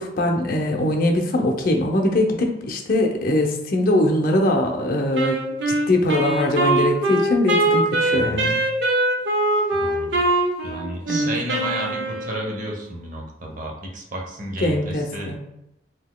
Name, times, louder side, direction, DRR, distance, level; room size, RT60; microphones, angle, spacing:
voice 1, 0.0-5.4 5.7-8.6 11.1-11.3 14.6-15.4, left 1 dB, 55° left, 2 dB, 0.6 m, -21 dB
Wind instrument woodwind instrument, 5.1-12.6, right 2 dB, 85° right, 0.7 m, -22 dB
voice 2, 9.7-10.2 10.6-15.3, right 1 dB, 50° right, 0 dB, 0.7 m, -32 dB
3.8 x 2.8 x 2.2 m, 0.85 s
head